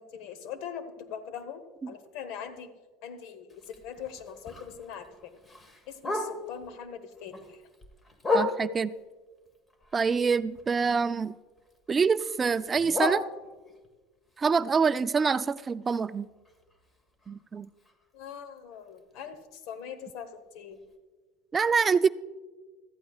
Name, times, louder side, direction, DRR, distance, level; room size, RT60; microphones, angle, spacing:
voice 1, 0.0-1.6 1.9-2.7 3.0-3.5 3.8-5.3 5.9-7.6 18.1-19.4 19.7-20.8, left 8 dB, 65° left, 11 dB, 1.1 m, -41 dB
Bark, 3.5-6.7 7.1-9.0 9.5-11.3 11.6-13.9 14.3-18.2 18.6-18.7 19.0-19.4 19.8-19.9 20.2-20.3 20.8-20.9, left 3 dB, 25° left, 1.4 m, -36 dB
voice 2, 8.3-8.9 9.9-11.3 11.9-13.2 14.4-16.3 17.3-17.7 21.5-22.1, right 5 dB, 25° right, 16 dB, 0.3 m, -26 dB
14.5 x 13.0 x 2.4 m, 1.3 s
hypercardioid pair, 85°, 0 cm